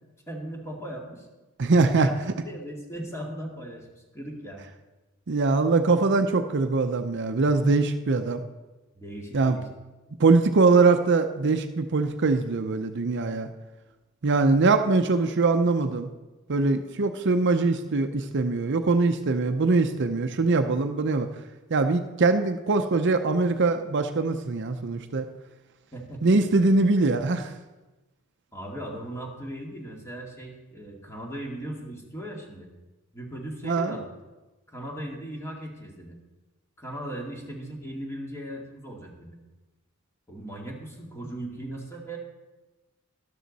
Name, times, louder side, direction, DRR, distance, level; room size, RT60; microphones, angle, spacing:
voice 1, 0.3-1.3 2.0-2.1 2.5-4.6 9.0-9.7 25.9-26.4 28.5-32.7 33.1-34.1 34.7-36.2 36.8-39.4 40.3-42.2, right 1 dB, 15° left, 0 dB, 2.2 m, -38 dB
voice 2, 1.6-2.1 5.3-8.4 9.3-9.6 10.2-13.5 14.2-16.1 16.5-21.3 21.7-25.3 26.2-27.5 33.6-34.0, right 3 dB, 55° right, 8 dB, 0.6 m, -22 dB
12.5 x 12.0 x 4.1 m, 1.1 s
head